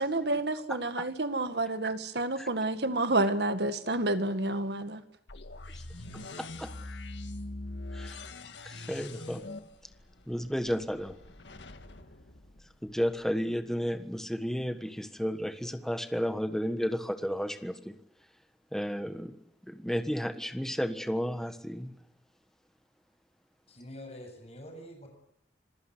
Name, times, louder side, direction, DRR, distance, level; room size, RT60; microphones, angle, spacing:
voice 1, 0.0-5.0, right 2 dB, 65° right, 10 dB, 1.9 m, -29 dB
sound 1, 5.3-13.2, left 2 dB, 90° left, 1.8 m, -43 dB
voice 2, 6.4-6.7 7.9-8.2 8.6-9.4 10.3-11.2 12.8-17.9 18.7-19.4 19.6-22.0, equal, 5° left, 9 dB, 1.4 m, -32 dB
voice 3, 23.7-25.1, equal, 35° left, 4 dB, 7.3 m, -46 dB
27.0 x 15.5 x 9.8 m, 0.74 s
head